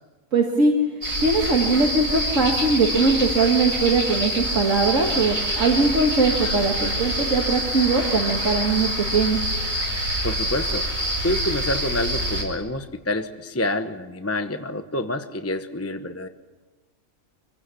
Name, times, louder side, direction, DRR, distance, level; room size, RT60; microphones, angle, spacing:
voice 1, 0.3-0.7 1.2-9.5, right 3 dB, 70° right, 2 dB, 2.3 m, -21 dB
sound 1, 1.0-12.4, equal, 90° right, 6.7 m, -26 dB
voice 2, 10.2-10.9 11.2-16.3, left 1 dB, 15° left, 8 dB, 0.8 m, -27 dB
25.5 x 16.5 x 9.9 m, 1.3 s
omnidirectional pair, 1.4 m